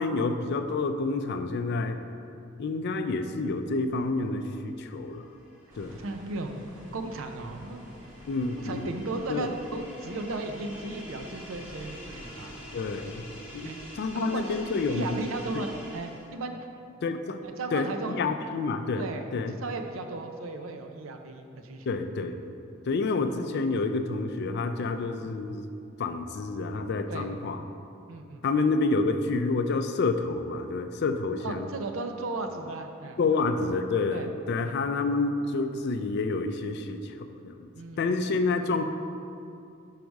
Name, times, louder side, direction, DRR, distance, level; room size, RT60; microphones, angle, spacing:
voice 1, 0.0-2.0 2.6-5.2 5.8-6.0 8.2-8.9 9.3-9.5 12.7-13.2 13.5-13.7 14.0-15.2 15.5-15.6 17.0-17.4 17.7-19.1 19.3-19.5 21.9-22.4 22.9-25.7 26.0-27.6 28.4-31.7 33.2-37.7 38.0-38.8, left 3 dB, 55° left, 8 dB, 0.4 m, -28 dB
sound 1, 4.6-16.5, equal, 10° right, 1.0 m, -47 dB
sound 2, 5.7-13.2, equal, 45° right, 1.1 m, -51 dB
voice 2, 6.0-7.9 8.6-12.5 13.6-13.8 14.1-16.6 17.4-18.3 18.9-21.9 27.1-27.3 28.1-28.4 31.4-33.2 34.1-34.3 34.6-34.8 37.8-38.2, right 2 dB, 80° right, 5 dB, 0.5 m, -36 dB
4.8 x 4.6 x 5.2 m, 2.5 s
head